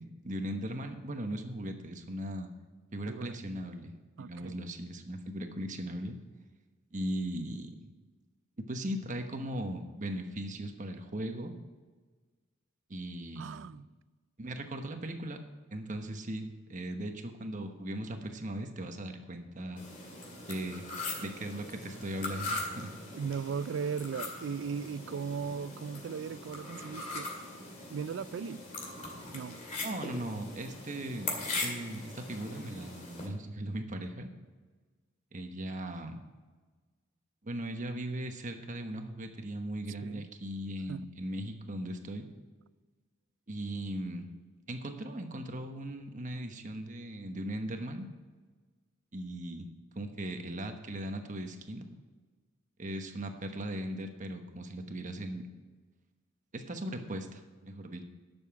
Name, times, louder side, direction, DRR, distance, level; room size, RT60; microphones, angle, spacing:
voice 1, 0.0-2.5 2.9-3.9 4.2-6.2 6.9-7.9 8.7-11.5 12.9-13.7 14.4-15.4 15.7-19.8 20.5-20.8 21.2-23.0 29.8-31.3 31.6-34.3 35.3-36.2 37.4-42.3 43.5-44.3 44.7-48.1 49.1-51.9 52.8-55.4 56.5-58.1, right 1 dB, 40° right, 1.1 m, -38 dB
voice 2, 3.1-3.4 4.2-4.6 13.4-13.9 23.1-27.3 27.9-28.6 29.3-29.6 40.0-40.3 40.9-41.1, right 6 dB, 65° right, 0.3 m, -37 dB
sound 1, 19.8-33.3, left 2 dB, 40° left, 2.2 m, -41 dB
11.0 x 7.2 x 5.8 m
head